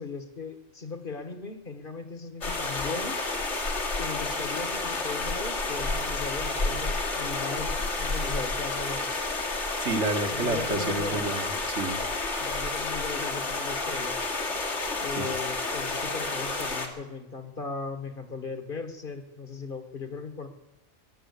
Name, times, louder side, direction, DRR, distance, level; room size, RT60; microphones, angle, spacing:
voice 1, 0.0-3.2 4.0-9.1 10.3-11.3 12.4-14.2 15.0-20.5, left 4 dB, 50° left, 9 dB, 1.6 m, -37 dB
sound 1, 2.4-16.9, left 3 dB, 70° left, 2.3 m, -30 dB
voice 2, 9.8-12.0 15.2-15.3, right 3 dB, 75° right, 4 dB, 2.1 m, -30 dB
20.5 x 7.7 x 8.2 m, 1.0 s
omnidirectional pair, 1.2 m